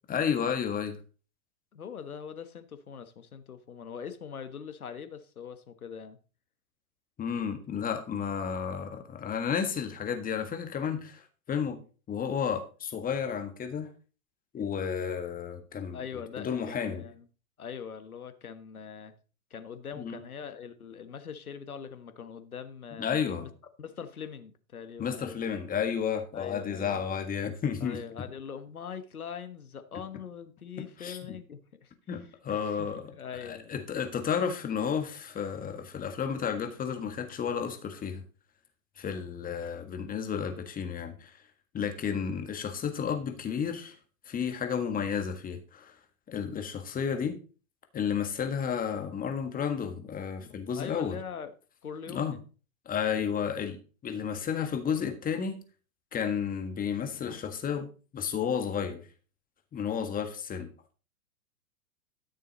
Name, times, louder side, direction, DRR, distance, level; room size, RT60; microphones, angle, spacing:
voice 1, 0.1-1.0 7.2-11.2 11.5-11.8 12.1-13.9 14.5-16.0 16.4-17.0 20.0-20.2 23.0-23.5 25.0-28.0 31.0-31.4 32.1-38.2 39.0-41.4 41.7-44.0 44.2-45.9 46.3-47.4 47.9-51.2 52.1-52.4 52.8-53.8 54.0-55.6 56.1-57.9 58.1-59.0 59.7-60.7, left 7 dB, 20° left, 6 dB, 1.6 m, -32 dB
voice 2, 1.7-6.2 15.9-17.2 17.6-19.1 19.5-23.5 23.8-25.4 26.3-27.0 27.8-31.9 32.5-33.8 50.8-51.5 51.8-52.4, left 7 dB, 85° left, 10 dB, 1.4 m, -42 dB
13.0 x 6.7 x 4.1 m, 0.36 s
hypercardioid pair, 110°, 42 cm